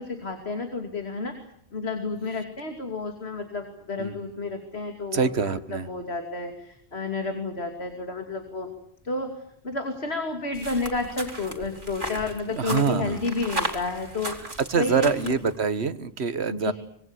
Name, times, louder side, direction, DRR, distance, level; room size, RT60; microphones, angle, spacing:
voice 1, 0.0-8.7 9.0-9.3 9.6-15.3 16.5-16.7, left 3 dB, 75° left, 5 dB, 3.1 m, -31 dB
voice 2, 5.1-5.9 12.5-13.2 14.4-16.7, right 5 dB, 85° right, 13 dB, 1.6 m, -25 dB
sound 1, 10.5-15.6, right 1 dB, 50° right, 3.5 m, -35 dB
25.5 x 22.0 x 8.2 m, 0.67 s
omnidirectional pair, 1.1 m